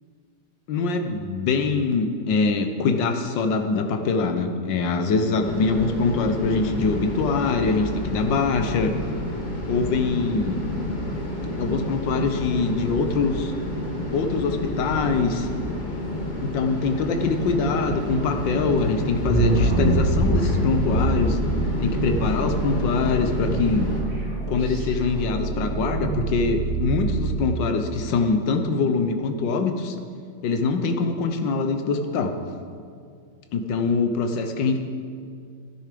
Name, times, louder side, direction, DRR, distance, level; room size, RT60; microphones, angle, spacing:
voice 1, 0.7-8.9 9.7-10.6 11.5-13.5 14.1-15.5 16.4-21.4 21.8-23.9 24.5-29.9 30.4-32.3 33.5-34.8, left 4 dB, 70° left, 6 dB, 1.6 m, -23 dB
sound 1, 5.4-24.0, left 1 dB, 25° left, 1.5 m, -30 dB
sound 2, 19.2-27.4, right 3 dB, 35° right, 3.9 m, -25 dB
13.0 x 10.5 x 5.1 m, 2.2 s
omnidirectional pair, 2.1 m